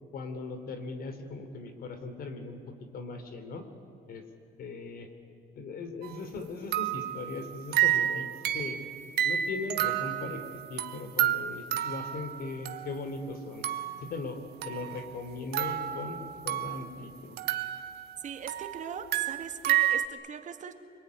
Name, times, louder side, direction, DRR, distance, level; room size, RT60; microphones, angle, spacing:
voice 1, 0.1-2.6 2.9-3.7 4.1-4.2 4.6-5.1 5.5-8.3 8.5-8.8 9.2-13.7 14.0-17.4, left 3 dB, 60° left, 8 dB, 3.5 m, -39 dB
sound 1, 6.0-6.2 6.7-13.2 13.6-14.1 14.6-17.0 17.4-20.1, right 12 dB, 75° right, 1.4 m, -31 dB
voice 2, 18.2-20.7, right 7 dB, 45° right, 7 dB, 2.0 m, -40 dB
26.0 x 21.5 x 9.8 m, 2.4 s
cardioid pair, 110°, 17 cm